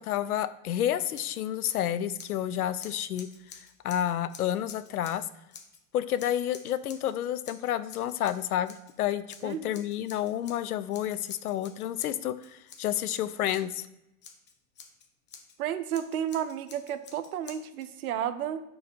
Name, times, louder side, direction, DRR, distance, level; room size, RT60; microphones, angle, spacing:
voice 1, 0.0-3.3 3.8-5.2 5.9-13.9, left 11 dB, 85° left, 13 dB, 0.6 m, -30 dB
Scissors, 1.1-5.8 6.2-7.1 7.4-8.9 9.3-13.8 14.2-15.6 15.9-17.9, left 6 dB, 25° left, 0.9 m, -50 dB
voice 2, 9.4-9.8 15.6-18.6, right 9 dB, 75° right, 11 dB, 0.8 m, -32 dB
6.9 x 3.9 x 5.2 m, 0.90 s
hypercardioid pair, 115°, 44 cm